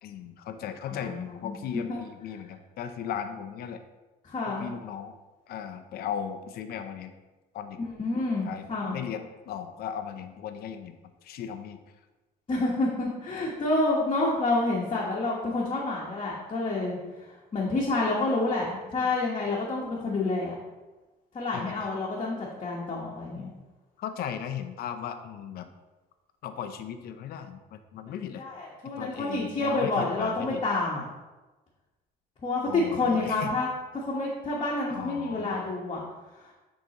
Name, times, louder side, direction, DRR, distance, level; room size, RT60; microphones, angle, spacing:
voice 1, 0.0-3.8 4.5-5.1 5.5-7.2 7.5-7.8 8.4-11.0 11.2-11.8 19.0-19.1 21.5-21.9 24.0-25.7 26.4-28.4 29.0-30.6 32.6-33.5 34.9-35.6, left 8 dB, 65° left, 8 dB, 0.6 m, -37 dB
voice 2, 0.9-1.5 1.9-2.0 4.2-4.7 8.0-9.0 12.5-20.6 21.3-23.5 28.1-31.0 32.4-33.7 33.9-36.0, left 2 dB, 30° left, -5 dB, 1.2 m, -28 dB
9.4 x 3.8 x 3.0 m, 1.1 s
cardioid pair, 110°, 17 cm